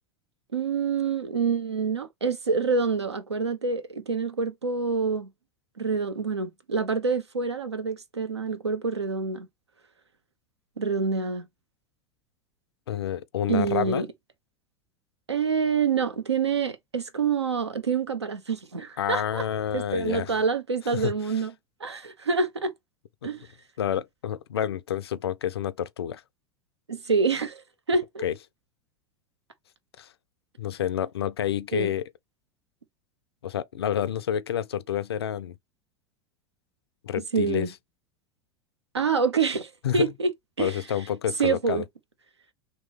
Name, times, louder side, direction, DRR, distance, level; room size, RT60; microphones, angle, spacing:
voice 1, 0.5-5.3 5.8-9.5 10.8-11.5 13.5-14.1 15.3-19.5 19.7-21.5 21.8-22.7 23.2-23.4 26.9-27.6 27.9-28.2 31.7-31.9 37.3-37.7 38.9-40.3 40.6-40.8 41.4-41.8, right 5 dB, 80° right, 0.6 m, -26 dB
voice 2, 12.9-14.1 19.0-20.4 20.9-21.1 23.2-23.3 23.8-26.2 28.2-28.3 30.0-30.1 30.6-32.1 33.4-35.6 37.0-37.7 39.8-40.1 40.6-41.8, left 10 dB, 70° left, 0.4 m, -29 dB
3.1 x 2.9 x 3.4 m
figure-of-eight pair, 80°, 14 cm